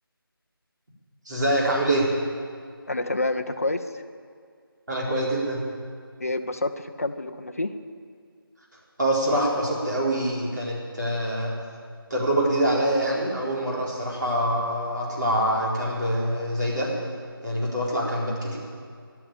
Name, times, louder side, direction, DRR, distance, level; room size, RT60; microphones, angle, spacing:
voice 1, 1.2-2.1 4.9-5.6 9.0-11.5 12.1-16.9 17.4-18.6, right 1 dB, 50° right, -5 dB, 4.4 m, -25 dB
voice 2, 2.9-4.0 6.2-7.7, left 2 dB, 40° left, 7 dB, 0.7 m, -28 dB
12.0 x 12.0 x 9.0 m, 2.2 s
figure-of-eight pair, 180°, 12 cm